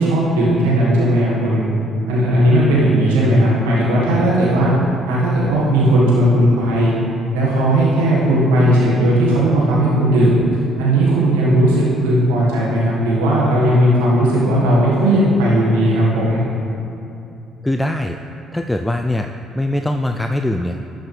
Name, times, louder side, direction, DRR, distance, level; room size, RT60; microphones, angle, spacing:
voice 1, 0.0-1.6 2.1-4.7 5.1-6.9 7.3-10.4 10.8-16.4, right 1 dB, 90° right, -7 dB, 1.6 m, -16 dB
voice 2, 17.6-18.2 18.5-19.3 19.5-20.8, left 1 dB, 10° left, 5 dB, 0.4 m, -21 dB
12.0 x 6.2 x 3.3 m, 2.8 s
hypercardioid pair, 55°, 0 cm